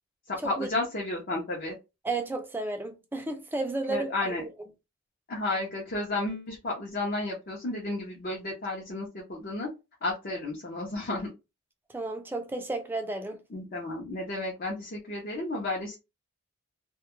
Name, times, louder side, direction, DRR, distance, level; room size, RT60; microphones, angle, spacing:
voice 1, 0.3-1.7 3.9-4.4 5.3-9.7 10.0-11.3 13.5-16.0, left 2 dB, 40° left, 0.5 m, -32 dB
voice 2, 2.0-4.5 11.9-13.4, right 2 dB, 10° right, 0.3 m, -33 dB
2.2 x 2.0 x 2.9 m
head